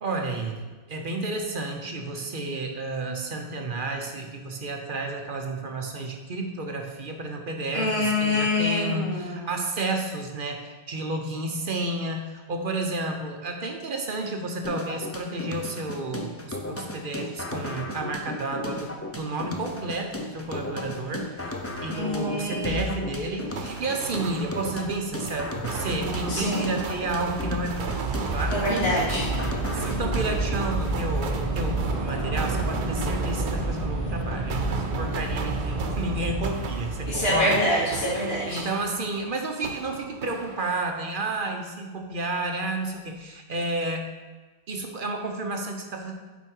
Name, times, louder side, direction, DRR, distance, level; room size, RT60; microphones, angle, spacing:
voice 1, 0.0-28.0 28.3-28.6 29.5-37.6 38.4-44.1 44.7-46.1, right 2 dB, 55° right, 3 dB, 0.9 m, -31 dB
voice 2, 7.7-9.5 21.9-22.9 26.3-26.7 28.5-29.3 37.1-38.6, left 1 dB, 65° left, -13 dB, 2.8 m, -26 dB
sound 1, 14.6-30.6, left 2 dB, 15° left, 0.5 m, -35 dB
sound 2, 23.6-39.3 39.6-41.0, right 5 dB, 80° right, 1.0 m, -36 dB
Train / Subway metro underground, 25.0-37.3, right 2 dB, 30° right, 1.5 m, -30 dB
8.3 x 4.6 x 4.5 m, 1.3 s
omnidirectional pair, 1.1 m